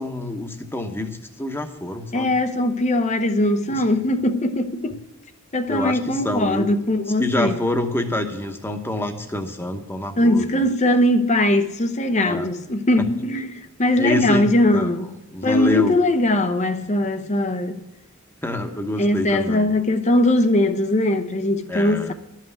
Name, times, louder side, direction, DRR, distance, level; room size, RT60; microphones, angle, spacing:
voice 1, 0.0-2.3 3.7-3.8 5.7-6.7 7.2-10.7 12.2-12.5 14.0-14.9 15.3-16.0 18.4-19.7 21.7-22.1, left 1 dB, 10° left, 1.0 m, -26 dB
voice 2, 2.1-5.0 5.5-7.6 10.2-15.1 15.4-17.8 19.0-22.1, left 1 dB, 35° left, 0.7 m, -20 dB
12.5 x 5.7 x 8.1 m
head